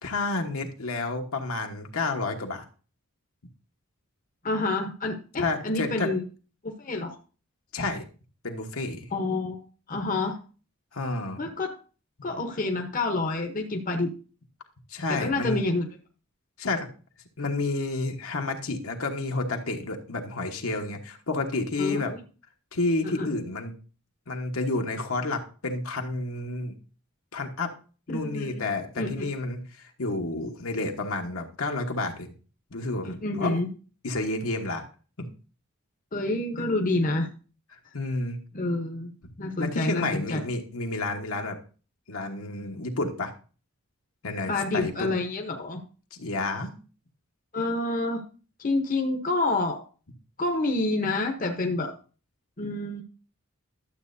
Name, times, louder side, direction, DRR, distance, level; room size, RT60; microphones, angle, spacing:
voice 1, 0.0-2.7 5.4-6.1 7.7-8.0 8.4-9.0 10.9-11.4 14.9-15.6 16.6-16.9 17.4-22.1 22.7-23.7 24.3-26.7 27.3-27.7 28.1-32.3 32.7-33.6 34.0-34.8 35.2-35.3 36.6-36.7 37.9-38.4 39.6-41.6 42.1-43.3 44.2-45.2 46.2-46.7, left 2 dB, 75° left, 3 dB, 1.3 m, -30 dB
voice 2, 4.4-6.2 6.6-7.1 9.1-9.6 9.9-10.4 11.4-11.7 12.2-14.1 15.1-15.9 21.8-22.2 23.0-23.3 28.1-28.6 29.0-29.2 33.2-33.7 36.1-37.3 38.5-39.1 39.4-40.4 44.5-45.8 47.5-48.2 48.6-49.8 50.4-51.9 52.6-53.0, left 2 dB, 40° left, 3 dB, 0.9 m, -28 dB
11.5 x 7.5 x 2.7 m, 0.37 s
head